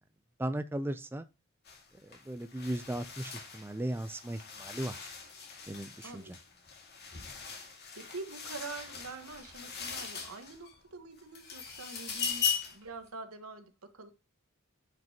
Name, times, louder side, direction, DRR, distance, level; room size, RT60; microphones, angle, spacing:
voice 1, 0.4-1.2 2.0-5.1 5.7-6.4, right 1 dB, 10° right, 0.4 m, -37 dB
sound 1, 1.7-1.8 2.1-10.8 11.2-12.9, left 6 dB, 50° left, 2.0 m, -39 dB
voice 2, 6.0-6.3 7.9-14.1, right 3 dB, 85° right, 1.3 m, -45 dB
9.3 x 5.2 x 2.8 m
head